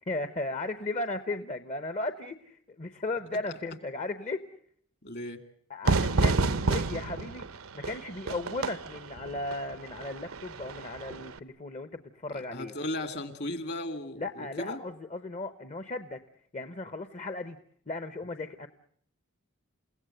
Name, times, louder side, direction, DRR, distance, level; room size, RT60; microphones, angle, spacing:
voice 1, 0.0-4.4 5.7-7.4 7.7-12.7 14.1-16.2 16.5-17.6 17.9-18.7, left 2 dB, 35° left, 11 dB, 0.9 m, -36 dB
voice 2, 5.0-5.4 12.3-14.8, left 1 dB, 55° left, 9 dB, 2.5 m, -36 dB
Fire / Fireworks, 5.8-11.4, right 3 dB, 85° right, 0.9 m, -30 dB
29.5 x 17.0 x 7.9 m, 0.64 s
head